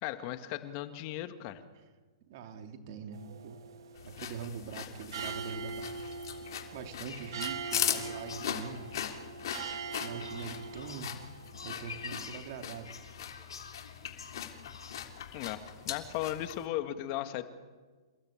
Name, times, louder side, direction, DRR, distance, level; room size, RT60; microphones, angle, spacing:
voice 1, 0.0-1.6 15.3-17.4, left 13 dB, 40° left, 9 dB, 1.9 m, -36 dB
voice 2, 2.3-3.6 4.1-5.9 6.7-8.9 10.0-11.1 11.6-12.9, right 6 dB, 50° right, 6 dB, 3.0 m, -43 dB
sound 1, 3.1-12.2, right 5 dB, 70° right, 2.1 m, -43 dB
sound 2, 4.0-16.7, left 10 dB, 65° left, 3.4 m, -40 dB
sound 3, 7.0-15.5, left 5 dB, 85° left, 5.2 m, -48 dB
28.5 x 17.5 x 8.8 m, 1.4 s
hypercardioid pair, 130°, 2 cm